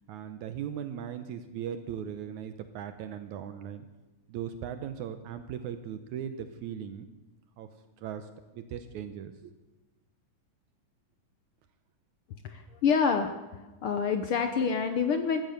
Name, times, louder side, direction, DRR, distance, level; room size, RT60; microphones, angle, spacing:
voice 1, 0.1-3.9 4.3-7.1 7.6-7.7 8.0-9.5, right 9 dB, 75° right, 9 dB, 2.1 m, -38 dB
voice 2, 12.4-13.3 13.8-15.4, left 6 dB, 80° left, 7 dB, 1.2 m, -27 dB
15.0 x 14.0 x 6.6 m, 1.1 s
omnidirectional pair, 3.6 m